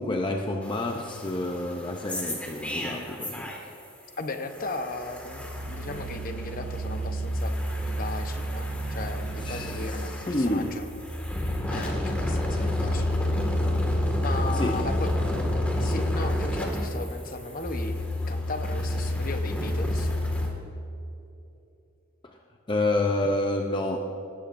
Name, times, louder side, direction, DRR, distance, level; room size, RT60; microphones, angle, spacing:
voice 1, 0.0-3.6 9.4-10.9 12.4-12.9 14.5-14.9 22.2-22.4 22.7-24.0, left 2 dB, 25° left, 2 dB, 0.6 m, -29 dB
sound 1, 0.6-3.8 4.1-20.5, left 1 dB, 5° left, 1.9 m, -29 dB
voice 2, 4.2-10.9 11.7-13.1 14.2-15.1 15.8-20.1, left 3 dB, 45° left, 6 dB, 0.9 m, -36 dB
18.5 x 15.5 x 2.6 m, 2.9 s
head